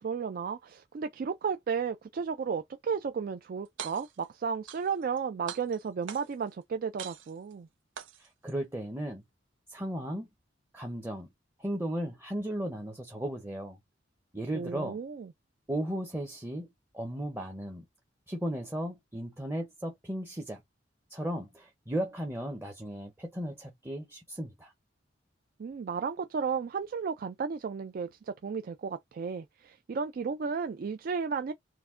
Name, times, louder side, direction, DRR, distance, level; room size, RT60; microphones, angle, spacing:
voice 1, 0.0-7.7 14.5-15.3 25.6-31.5, right 6 dB, 50° right, 0.3 m, -33 dB
sound 1, 3.6-4.3 4.7-5.2 5.5-6.5 7.0-7.5 8.0-8.5, right 7 dB, 90° right, 0.7 m, -43 dB
voice 2, 8.2-9.2 9.7-10.3 10.7-11.3 11.6-13.8 14.3-15.0 15.7-16.7 16.9-17.8 18.3-20.6 21.1-24.7, right 1 dB, 10° right, 0.7 m, -35 dB
4.5 x 2.1 x 3.6 m
head